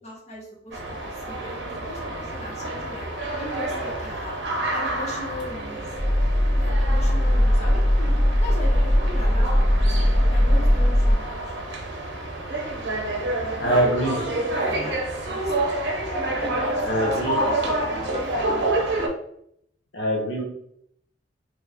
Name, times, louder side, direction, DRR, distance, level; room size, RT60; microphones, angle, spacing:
voice 1, 0.0-1.6 1.9-3.1 3.4-5.9 6.5-9.9 10.2-11.5 13.4-13.8 14.1-15.5 16.3-18.3 18.5-18.6, left 1 dB, 40° left, -4 dB, 1.0 m, -39 dB
sound 1, 0.7-19.1, right 2 dB, 70° right, 0.7 m, -28 dB
sound 2, 6.0-11.1, equal, 5° left, 0.7 m, -19 dB
voice 2, 13.6-14.2 16.8-17.4 19.9-20.5, equal, 90° left, -1 dB, 0.8 m, -23 dB
3.1 x 2.4 x 3.4 m, 0.71 s
head